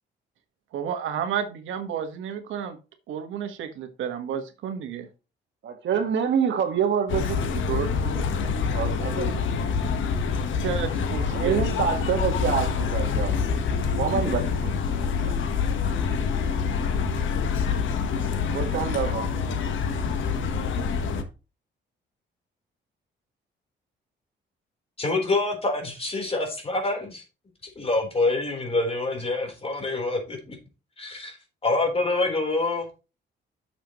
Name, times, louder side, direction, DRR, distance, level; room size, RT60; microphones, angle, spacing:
voice 1, 0.7-2.8 3.1-5.1 10.6-11.6, right 8 dB, 80° right, 1.5 m, -31 dB
voice 2, 5.6-9.4 11.3-13.3 14.0-15.3 18.5-19.3, right 7 dB, 65° right, 1.6 m, -27 dB
sound 1, 7.1-21.2, left 5 dB, 75° left, 1.4 m, -26 dB
voice 3, 25.0-27.2 27.8-30.6 31.0-31.4 31.6-32.9, left 2 dB, 30° left, 4.0 m, -26 dB
10.5 x 6.9 x 3.1 m
cardioid pair, 90°, 20 cm